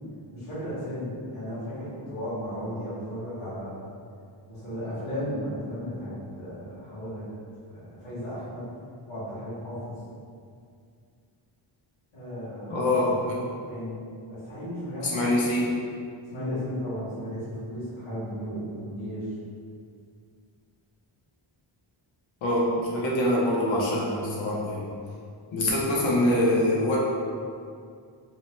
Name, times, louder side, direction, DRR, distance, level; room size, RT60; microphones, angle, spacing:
voice 1, 0.3-3.7 4.5-7.2 7.7-8.6 9.1-9.9 12.1-12.9 13.4-14.0 14.3-15.3 16.3-19.2, equal, 85° left, -14 dB, 1.2 m, -35 dB
voice 2, 12.7-13.4 15.0-15.7 22.4-24.9 25.5-27.0, left 1 dB, 65° left, -4 dB, 0.8 m, -24 dB
2.9 x 2.1 x 3.0 m, 2.3 s
wide cardioid pair, 125°, 49 cm